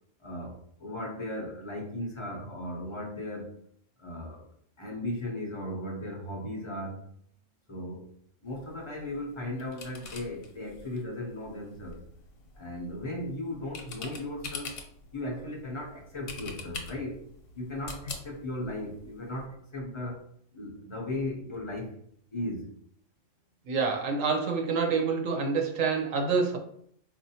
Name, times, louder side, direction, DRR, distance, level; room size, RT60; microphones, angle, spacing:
voice 1, 0.2-3.6 4.0-4.5 4.8-7.0 7.7-8.1 8.4-12.0 12.5-14.7 15.1-17.2 17.5-20.3 20.5-22.0 22.3-22.7, left 1 dB, 35° left, -1 dB, 0.5 m, -36 dB
sound 1, 8.4-19.5, left 4 dB, 75° left, 1.0 m, -45 dB
voice 2, 23.7-26.6, right 5 dB, 90° right, 2 dB, 1.1 m, -27 dB
4.3 x 2.5 x 2.7 m, 0.65 s
omnidirectional pair, 1.3 m